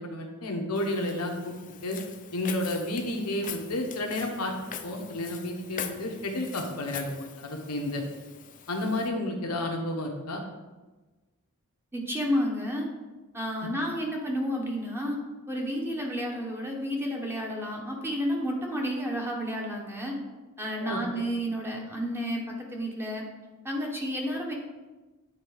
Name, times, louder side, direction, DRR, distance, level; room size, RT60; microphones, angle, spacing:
voice 1, 0.0-1.5 1.8-2.0 2.3-4.5 4.8-8.0 8.7-10.4 13.6-13.7 20.8-21.0, left 1 dB, 85° left, 3 dB, 1.2 m, -31 dB
Walk footsteps, 0.8-9.1, left 8 dB, 35° left, 0.5 m, -43 dB
voice 2, 11.9-12.9 13.3-15.2 15.5-20.2 20.6-23.3 23.6-24.5, equal, 10° right, -1 dB, 0.9 m, -31 dB
8.7 x 4.1 x 4.8 m, 1.2 s
head